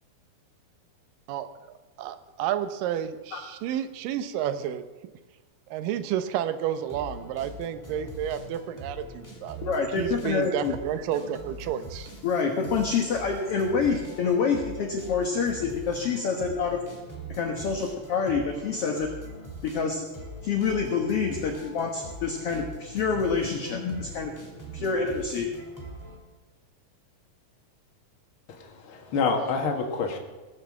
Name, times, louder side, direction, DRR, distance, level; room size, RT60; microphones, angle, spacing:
voice 1, 2.0-4.8 5.7-12.1, right 10 dB, 75° right, 10 dB, 2.4 m, -31 dB
sound 1, 6.8-26.2, right 1 dB, 10° left, 1.2 m, -42 dB
voice 2, 9.6-10.8 12.2-16.8 17.4-19.1 19.6-20.0 20.4-24.3 24.7-25.5, left 5 dB, 60° left, 2 dB, 1.6 m, -27 dB
voice 3, 28.5-30.2, left 4 dB, 45° left, 2 dB, 2.1 m, -27 dB
18.0 x 7.0 x 7.4 m, 1.3 s
omnidirectional pair, 4.2 m